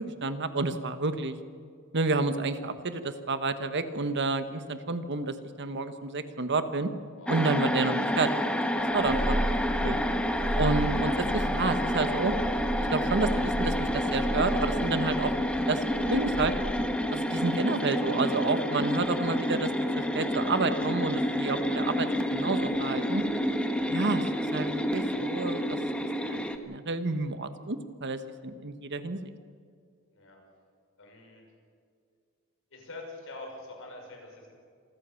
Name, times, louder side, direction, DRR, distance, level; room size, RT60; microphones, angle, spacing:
voice 1, 0.0-1.4 1.9-6.9 7.3-8.3 8.7-9.4 9.7-10.0 10.5-12.3 12.9-15.3 15.7-16.5 17.1-19.7 19.9-23.2 23.9-24.2 24.5-25.8 26.2-29.3, right 3 dB, 55° right, 9 dB, 1.3 m, -30 dB
sound 1, 7.3-26.6, equal, 5° left, 1.3 m, -29 dB
Purr, 8.9-17.0, equal, 25° left, 3.5 m, -34 dB
voice 2, 31.0-31.4 32.7-34.5, left 2 dB, 65° left, 1 dB, 6.0 m, -45 dB
26.5 x 14.5 x 7.1 m, 2.2 s
head